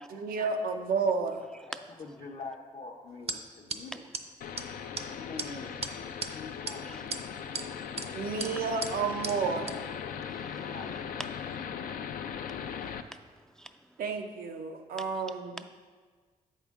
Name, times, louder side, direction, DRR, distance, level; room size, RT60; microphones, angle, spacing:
voice 1, 0.1-1.5 8.1-9.8 14.0-15.6, right 5 dB, 85° right, 5 dB, 0.6 m, -31 dB
voice 2, 2.0-4.1 5.0-7.0 8.0-8.2 10.3-11.1, left 3 dB, 65° left, -3 dB, 0.8 m, -45 dB
sound 1, 3.3-3.4 3.7-3.8 4.1-4.2 4.6-4.7 4.9-5.1 5.4-5.5 5.8-6.3 6.7-6.8 7.1-7.7 8.0-8.1 8.4-8.5 8.8-8.9 9.2-9.3 9.7-9.8, right 4 dB, 45° right, 0.6 m, -35 dB
sound 2, 4.4-13.0, left 7 dB, 80° left, 0.4 m, -39 dB
voice 3, 10.1-10.7 12.8-12.9 13.5-13.7, right 1 dB, 5° left, 7 dB, 0.3 m, -46 dB
7.4 x 5.5 x 3.5 m, 1.5 s
cardioid pair, 60°, 15 cm